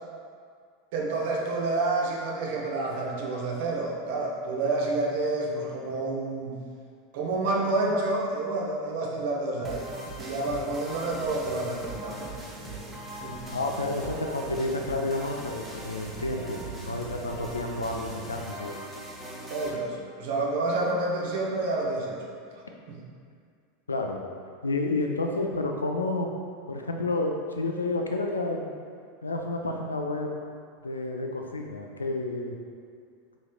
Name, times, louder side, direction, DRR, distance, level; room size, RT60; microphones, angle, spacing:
voice 1, 0.9-6.6 7.1-9.9 10.2-12.3 12.6-12.9 13.2-13.4 19.5-22.2 22.9-23.0, right 2 dB, 60° right, -2 dB, 0.7 m, -29 dB
sound 1, 9.6-19.7, right 2 dB, 15° right, 0.8 m, -40 dB
voice 2, 13.5-18.8 23.9-24.2 24.6-26.3 26.7-28.7 29.2-30.3 30.8-32.6, left 2 dB, 80° left, 2 dB, 0.3 m, -30 dB
4.6 x 3.1 x 2.4 m, 2.2 s
figure-of-eight pair, 85°, 0 cm